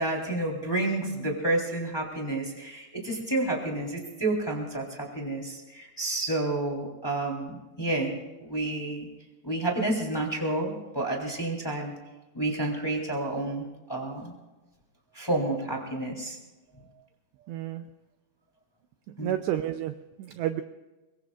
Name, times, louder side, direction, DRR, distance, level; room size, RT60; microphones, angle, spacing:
voice 1, 0.0-9.1 9.4-11.9 12.3-14.3 15.1-16.4 19.2-19.4, right 2 dB, 5° left, -1 dB, 2.4 m, -30 dB
voice 2, 17.5-17.8 19.2-20.6, right 12 dB, 90° right, 8 dB, 2.4 m, -31 dB
25.0 x 22.0 x 2.5 m, 1.1 s
omnidirectional pair, 5.7 m